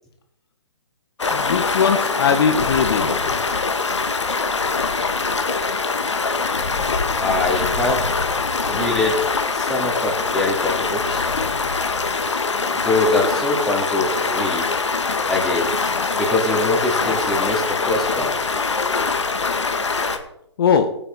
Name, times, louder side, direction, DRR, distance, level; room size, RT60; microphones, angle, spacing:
Stream, 1.2-20.2, left 4 dB, 80° left, 1.7 m, -23 dB
voice 1, 1.3-3.1 20.6-20.9, left 6 dB, 55° left, 7 dB, 1.3 m, -19 dB
voice 2, 7.2-8.0 8.7-9.2 9.5-11.3 12.7-14.7 15.3-15.7 16.1-18.4, left 2 dB, ahead, -4 dB, 3.7 m, -23 dB
17.0 x 9.1 x 4.3 m, 0.75 s
figure-of-eight pair, 130°, 15 cm